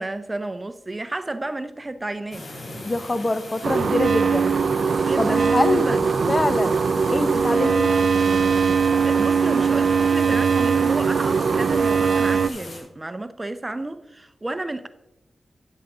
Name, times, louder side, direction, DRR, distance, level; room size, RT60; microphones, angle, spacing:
voice 1, 0.0-2.5 5.0-6.0 9.0-14.9, right 2 dB, 30° right, 0.6 m, -31 dB
sound 1, 2.3-12.8, left 2 dB, 55° left, 3.2 m, -39 dB
voice 2, 2.8-4.6 5.2-6.0 6.3-6.8 7.1-7.9, left 2 dB, 35° left, 0.7 m, -24 dB
sound 2, 3.6-12.5, right 5 dB, 80° right, 0.3 m, -20 dB
9.8 x 7.4 x 3.6 m
cardioid pair, 55°, 0 cm